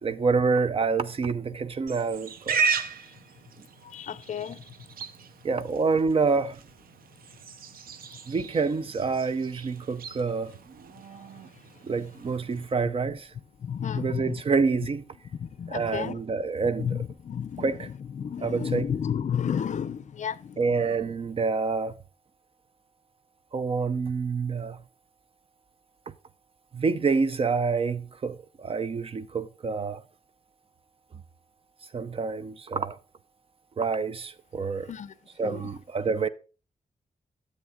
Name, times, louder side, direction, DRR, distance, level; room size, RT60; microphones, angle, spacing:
voice 1, 0.0-2.6 5.4-6.6 8.3-10.5 11.8-13.3 14.0-15.0 15.7-17.0 17.6-17.9 18.4-18.9 20.6-21.9 23.5-24.8 26.7-30.0 31.9-33.0 33.8-34.9 35.4-36.3, right 4 dB, 40° right, 0.5 m, -27 dB
Livestock farm animals working animals, 1.9-12.7, right 5 dB, 90° right, 0.7 m, -36 dB
voice 2, 3.8-4.6 13.6-14.4 15.4-16.2 16.8-20.6 34.9-35.1 35.4-35.6, left 8 dB, 55° left, 0.5 m, -32 dB
9.8 x 8.0 x 3.7 m
wide cardioid pair, 135°, 15 cm